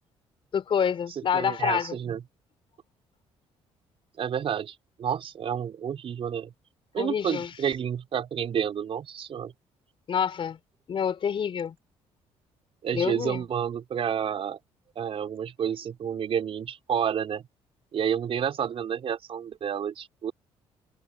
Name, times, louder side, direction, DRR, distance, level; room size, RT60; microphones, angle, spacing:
voice 1, 0.5-2.0 7.0-7.5 10.1-10.6 10.9-11.7 12.9-13.4, left 7 dB, 50° left, 4.2 m, -27 dB
voice 2, 1.3-2.2 4.2-6.5 6.9-9.5 12.8-14.6 14.9-17.5 17.9-20.3, right 8 dB, 55° right, 4.7 m, -30 dB
cardioid pair, 90°, 11 cm